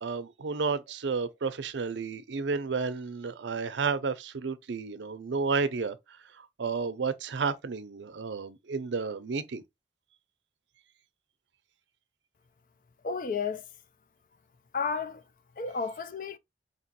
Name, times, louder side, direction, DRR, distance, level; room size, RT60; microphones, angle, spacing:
voice 1, 0.0-9.6, right 4 dB, 85° right, 0.5 m, -32 dB
voice 2, 13.0-13.6 14.7-15.2 15.6-16.4, left 5 dB, 45° left, 0.4 m, -32 dB
4.4 x 3.0 x 2.8 m
head